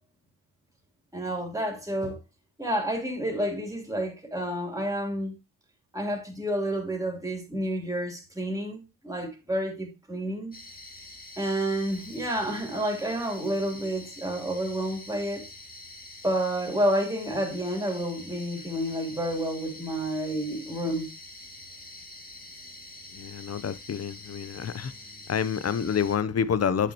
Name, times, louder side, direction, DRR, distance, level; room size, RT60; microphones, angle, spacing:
voice 1, 1.1-2.2 2.6-5.3 5.9-10.6 11.4-15.5 16.2-21.1, right 1 dB, 10° right, 3.1 m, -29 dB
sound 1, 10.5-26.2, left 2 dB, 25° left, 2.0 m, -46 dB
voice 2, 23.1-24.9 25.3-26.9, left 7 dB, 40° left, 0.7 m, -28 dB
8.5 x 5.8 x 2.9 m
cardioid pair, 70°, 37 cm